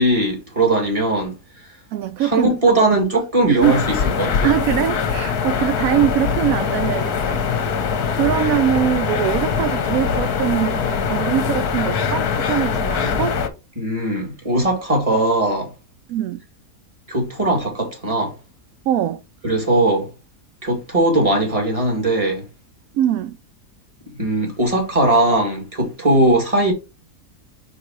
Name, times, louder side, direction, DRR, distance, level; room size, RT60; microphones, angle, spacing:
voice 1, 0.0-1.3 2.2-4.5 13.8-15.7 17.1-18.3 19.4-20.1 20.6-22.4 24.2-26.7, right 1 dB, 20° right, 2.2 m, -19 dB
voice 2, 1.9-2.8 3.5-3.8 4.4-7.5 8.1-13.4 16.1-16.4 18.9-19.2 22.9-23.4, right 11 dB, 70° right, 0.9 m, -22 dB
sound 1, 3.6-13.5, left 6 dB, 70° left, 1.4 m, -22 dB
5.3 x 4.2 x 4.5 m
omnidirectional pair, 1.7 m